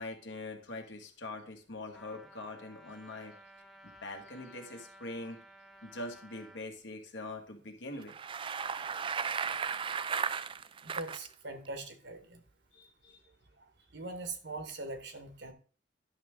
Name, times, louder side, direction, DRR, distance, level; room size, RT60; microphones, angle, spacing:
voice 1, 0.0-3.3 3.8-5.4 5.8-8.1 12.7-13.3, left 2 dB, 70° left, 3 dB, 1.7 m, -43 dB
Trumpet, 1.9-6.6, equal, ahead, 1.0 m, -55 dB
Bicycle, 8.0-11.3, right 6 dB, 25° right, 0.3 m, -35 dB
voice 2, 10.8-12.4 13.6-13.7 13.9-15.5, right 2 dB, 65° right, 7 dB, 1.3 m, -42 dB
10.5 x 6.5 x 3.7 m, 0.39 s
head